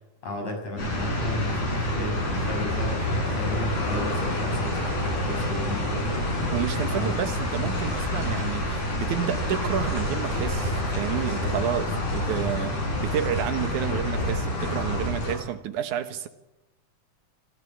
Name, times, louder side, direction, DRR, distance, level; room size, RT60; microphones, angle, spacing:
voice 1, 0.2-6.1 6.9-7.2 11.1-11.6 11.9-12.0, left 1 dB, 60° left, 7.7 m, -34 dB
sound 1, 0.8-15.3, left 1 dB, 85° left, 8.3 m, -27 dB
voice 2, 6.5-12.7 13.0-16.3, right 10 dB, 80° right, 2.7 m, -30 dB
26.0 x 14.5 x 8.6 m
omnidirectional pair, 3.4 m